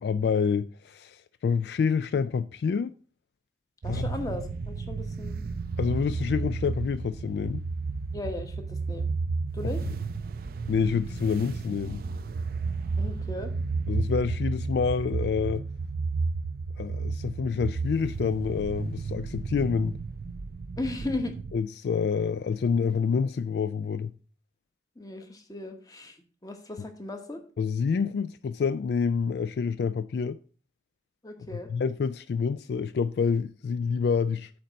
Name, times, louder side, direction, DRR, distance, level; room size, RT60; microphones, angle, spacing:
voice 1, 0.0-2.9 3.9-4.1 5.8-7.6 10.7-12.0 13.9-15.6 16.8-20.0 21.5-24.1 27.6-30.4 31.7-34.5, left 6 dB, 65° left, 0.3 m, -27 dB
voice 2, 3.8-5.4 8.1-9.1 9.5-9.8 13.0-13.5 20.8-21.4 25.0-27.4 31.2-31.7, left 2 dB, 20° left, 1.1 m, -36 dB
sound 1, 3.8-21.6, right 4 dB, 55° right, 0.4 m, -32 dB
8.6 x 4.0 x 6.2 m
head